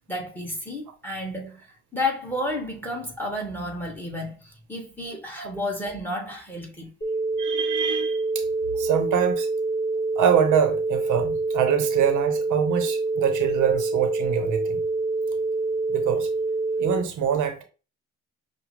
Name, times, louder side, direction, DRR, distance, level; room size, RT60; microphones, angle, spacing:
voice 1, 0.1-6.9, left 1 dB, 5° left, 1.5 m, -31 dB
sound 1, 7.0-17.0, right 3 dB, 40° left, 1.8 m, -26 dB
voice 2, 7.4-8.4 8.8-9.5 10.2-14.8 15.9-16.3 16.8-17.6, right 8 dB, 80° right, 0.8 m, -24 dB
5.9 x 2.2 x 3.2 m
cardioid pair, 90°, 30 cm